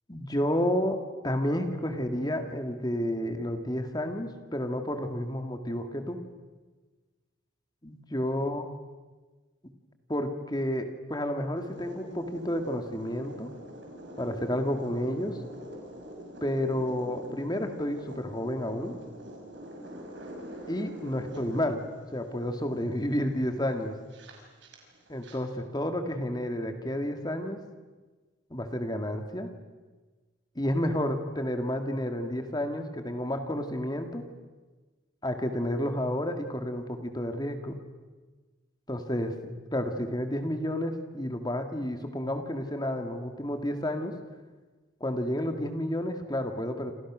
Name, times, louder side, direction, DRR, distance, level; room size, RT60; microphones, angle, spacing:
voice 1, 0.1-6.2 7.8-8.7 10.1-13.5 14.2-15.4 16.4-18.9 20.7-21.8 22.1-24.0 25.1-27.7 28.5-29.5 30.6-34.3 35.2-37.8 38.9-39.3 39.7-44.2 45.0-46.9, left 1 dB, 20° left, 6 dB, 2.1 m, -31 dB
sound 1, 11.6-25.4, equal, 65° right, 5.8 m, -45 dB
28.5 x 27.5 x 6.3 m, 1.3 s
head